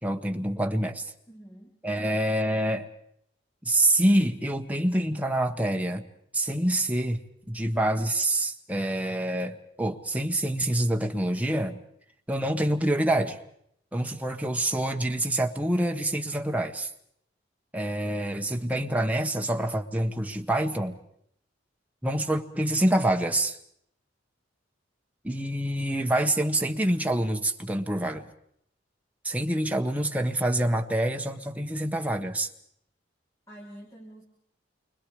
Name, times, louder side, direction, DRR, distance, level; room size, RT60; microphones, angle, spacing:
voice 1, 0.0-1.1 1.8-2.9 3.6-6.1 6.3-7.2 7.5-11.8 12.3-13.4 13.9-16.9 17.7-21.0 22.0-23.6 25.2-28.3 29.2-32.5, right 1 dB, 10° right, 1.4 m, -26 dB
voice 2, 1.3-1.7 33.5-34.2, right 1 dB, 15° left, 3.9 m, -46 dB
29.0 x 25.0 x 5.0 m
head